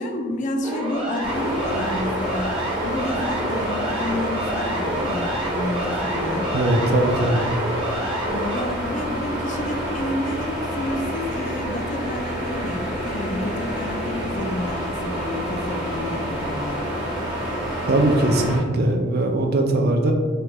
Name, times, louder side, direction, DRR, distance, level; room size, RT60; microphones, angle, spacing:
voice 1, 0.0-5.3 5.5-6.5 8.3-16.9, left 1 dB, 40° left, 4 dB, 0.4 m, -30 dB
Siren, 0.6-8.6, right 1 dB, 25° right, 0.9 m, -29 dB
sound 1, 1.2-18.6, equal, 10° right, 1.3 m, -28 dB
voice 2, 6.5-7.5 17.9-20.1, right 2 dB, 50° right, 3 dB, 0.5 m, -20 dB
3.2 x 2.9 x 3.5 m, 1.5 s
head